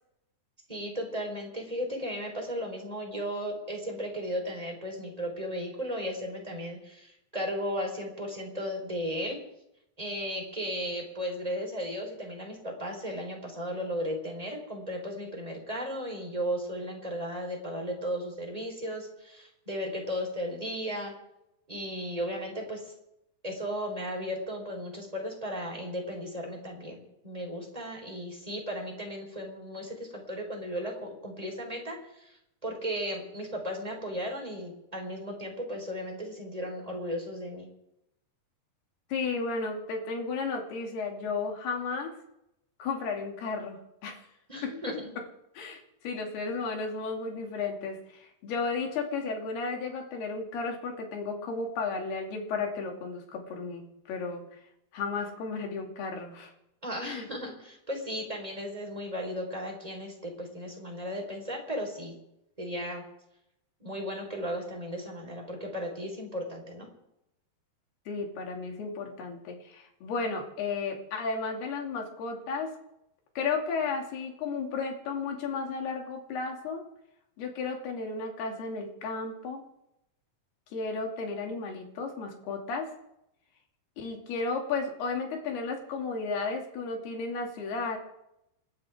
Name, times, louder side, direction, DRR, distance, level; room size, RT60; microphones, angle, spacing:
voice 1, 0.7-9.4 10.0-21.1 21.7-22.9 23.4-32.4 32.6-37.7 44.5-45.1 56.8-62.1 62.6-63.0 63.8-66.9, equal, 10° right, 1 dB, 3.6 m, -35 dB
voice 2, 39.1-42.1 42.8-44.2 44.6-44.7 45.6-54.4 54.9-56.5 57.0-57.2 68.1-72.7 73.4-76.8 77.4-79.6 80.7-82.9 84.0-88.0, left 4 dB, 75° left, 1 dB, 4.5 m, -33 dB
28.5 x 12.5 x 3.6 m, 0.83 s
omnidirectional pair, 4.6 m